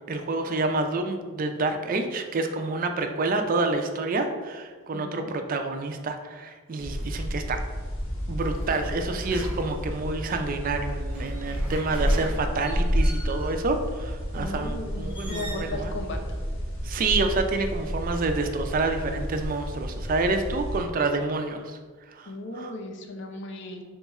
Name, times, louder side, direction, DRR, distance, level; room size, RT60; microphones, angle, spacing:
voice 1, 0.1-7.6 8.3-15.9 16.8-21.8 22.1-22.7, right 3 dB, 40° right, 6 dB, 0.3 m, -28 dB
voice 2, 4.9-5.3 14.3-16.2 22.3-23.8, left 2 dB, 60° left, 4 dB, 0.5 m, -36 dB
sound 1, 6.8-20.8, equal, 90° left, 1.0 m, -30 dB
sound 2, 8.4-10.1 10.9-13.7 15.0-15.7, equal, 5° right, 0.9 m, -43 dB
3.6 x 2.3 x 4.1 m, 1.5 s
head